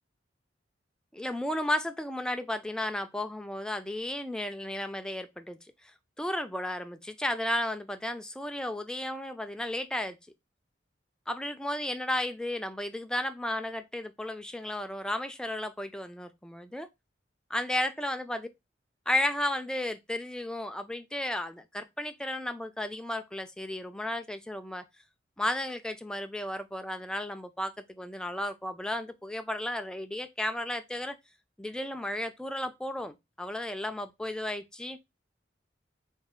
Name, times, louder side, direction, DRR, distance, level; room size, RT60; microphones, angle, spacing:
voice 1, 1.1-5.6 6.2-10.2 11.3-16.9 17.5-18.5 19.1-24.8 25.4-31.2 31.6-35.0, left 1 dB, 5° left, 0.4 m, -33 dB
4.4 x 2.3 x 3.6 m
head